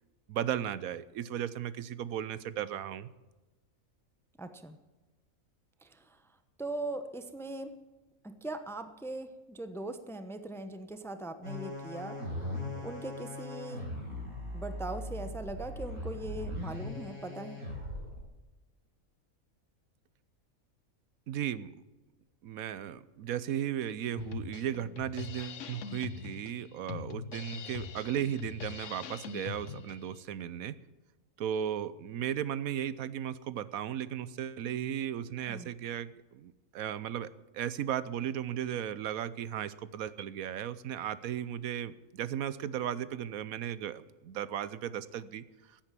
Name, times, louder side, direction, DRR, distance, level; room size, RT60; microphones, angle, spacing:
voice 1, 0.3-3.1 21.3-21.7 22.4-30.7 31.4-45.4, right 10 dB, 80° right, 16 dB, 1.1 m, -36 dB
voice 2, 4.4-4.8 5.8-6.2 6.6-7.7 8.2-13.8 14.5-17.6 35.5-35.7, right 2 dB, ahead, 9 dB, 0.8 m, -40 dB
sound 1, 11.4-18.2, left 1 dB, 60° right, 6.0 m, -39 dB
Drum kit, 24.1-30.1, left 8 dB, 65° left, 1.1 m, -42 dB
16.0 x 8.8 x 7.5 m, 1.2 s
omnidirectional pair, 1.5 m